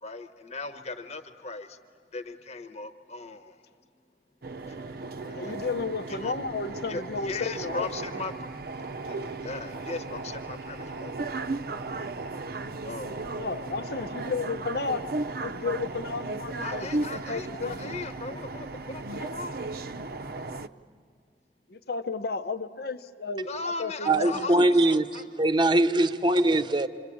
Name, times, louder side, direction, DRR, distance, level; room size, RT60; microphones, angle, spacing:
voice 1, 0.0-1.8 2.1-3.6 4.7-5.5 6.1-6.3 6.9-11.2 12.8-13.3 16.6-19.7 23.4-25.2, left 3 dB, 40° left, 1.1 m, -38 dB
sound 1, 4.4-20.7, right 3 dB, 55° right, 0.6 m, -36 dB
voice 2, 5.3-7.9 13.4-15.0 15.3-17.9 21.7-24.7, left 4 dB, 60° left, 0.8 m, -33 dB
voice 3, 24.1-26.9, right 1 dB, 25° right, 0.8 m, -22 dB
26.5 x 26.0 x 8.6 m
head